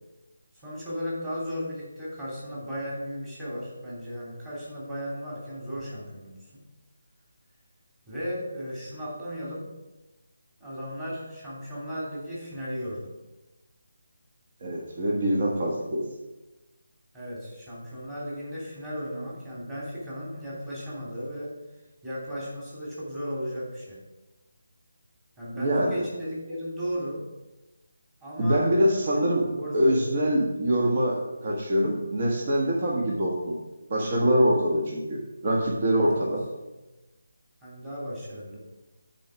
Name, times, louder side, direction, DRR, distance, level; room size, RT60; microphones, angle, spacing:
voice 1, 0.5-6.6 8.1-9.7 10.6-13.1 17.1-21.6 22.0-24.0 25.4-27.3 28.2-28.7 29.5-29.9 36.0-36.3 37.6-38.6, equal, 15° right, -8 dB, 3.0 m, -35 dB
voice 2, 14.6-16.1 25.5-26.0 28.4-33.6 33.9-36.4, equal, 40° right, -1 dB, 1.4 m, -24 dB
9.4 x 4.5 x 5.8 m, 1.1 s
figure-of-eight pair, 165°, 0 cm